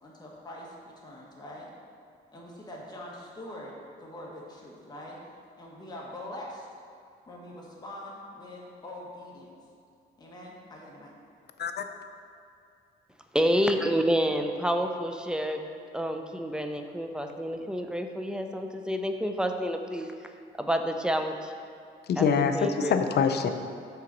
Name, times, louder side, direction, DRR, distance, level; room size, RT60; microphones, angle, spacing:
voice 1, 0.0-1.7 2.3-5.2 5.6-6.6 7.3-9.5 10.2-11.1, left 1 dB, 20° left, -3 dB, 1.3 m, -43 dB
voice 2, 13.3-15.6 15.9-20.1 20.6-21.5 22.2-22.3 22.5-23.0, equal, 5° right, 5 dB, 0.5 m, -28 dB
voice 3, 22.1-23.5, left 6 dB, 55° left, 7 dB, 0.5 m, -25 dB
5.7 x 4.0 x 6.0 m, 2.5 s
cardioid pair, 90°, 20 cm